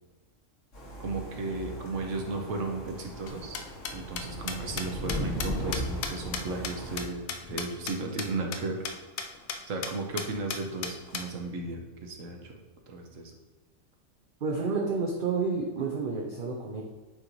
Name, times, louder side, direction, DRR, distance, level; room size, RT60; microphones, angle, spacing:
sound 1, 0.7-7.0, equal, 65° left, 1.9 m, -37 dB
voice 1, 1.0-3.6 3.9-8.8 9.7-12.6 12.9-13.3, right 3 dB, 75° right, 2 dB, 1.3 m, -35 dB
sound 2, 3.3-7.9 8.2-8.3 8.5-8.6 8.8-8.9 9.2-9.6 9.8-9.9 10.2-11.2, left 6 dB, 90° left, 1.1 m, -34 dB
voice 2, 14.4-16.8, right 4 dB, 50° right, -1 dB, 0.7 m, -30 dB
8.8 x 3.1 x 3.9 m, 1.3 s
omnidirectional pair, 1.4 m